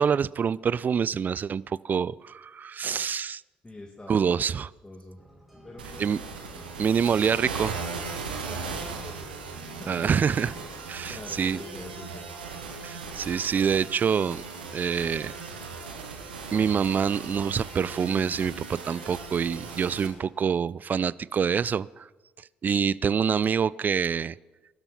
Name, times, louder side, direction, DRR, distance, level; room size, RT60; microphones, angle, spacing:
voice 1, 0.0-3.4 4.1-4.7 6.0-6.2 6.8-7.8 9.9-10.5 10.9-11.6 12.8-14.4 14.7-15.3 16.5-22.1 22.6-24.3, right 7 dB, 35° right, 22 dB, 0.4 m, -26 dB
voice 2, 3.6-4.4 4.8-5.2 5.6-6.1 8.5-10.4 11.1-12.3, left 1 dB, 15° left, 0 dB, 2.1 m, -44 dB
sound 1, 5.2-15.4, equal, ahead, 4.9 m, -53 dB
sound 2, 5.8-20.1, right 4 dB, 80° right, 1.4 m, -38 dB
20.5 x 12.5 x 4.3 m, 1.2 s
figure-of-eight pair, 45°, 5 cm